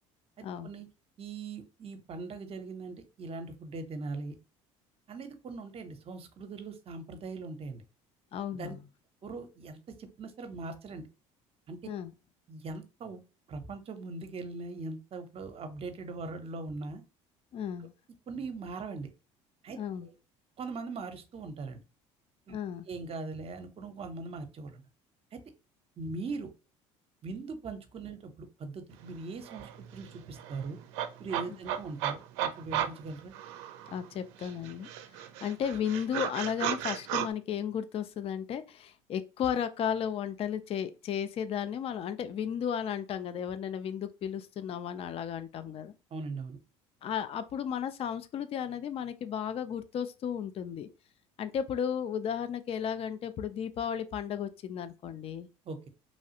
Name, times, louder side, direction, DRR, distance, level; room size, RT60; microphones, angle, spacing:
voice 1, 0.4-0.9 1.2-4.3 5.1-7.8 8.6-8.7 9.2-11.1 11.7-11.8 12.5-13.2 13.5-17.0 18.3-19.1 19.6-20.1 20.6-21.8 22.5-22.6 22.9-24.8 25.3-25.4 26.0-26.5 27.2-30.8 31.2-33.3 46.1-46.6 55.6-55.9, right 3 dB, 40° right, 0.7 m, -40 dB
voice 2, 8.3-8.8 11.8-12.1 17.5-17.9 19.7-20.1 22.5-22.9 31.5-31.6 33.9-34.9 35.4-45.9 47.0-50.9 51.4-55.5, left 8 dB, 40° left, 0.4 m, -34 dB
sound 1, 29.1-29.2 29.4-34.1 34.4-37.3, right 10 dB, 75° right, 0.4 m, -35 dB
3.1 x 2.3 x 2.8 m
hypercardioid pair, 75°, 15 cm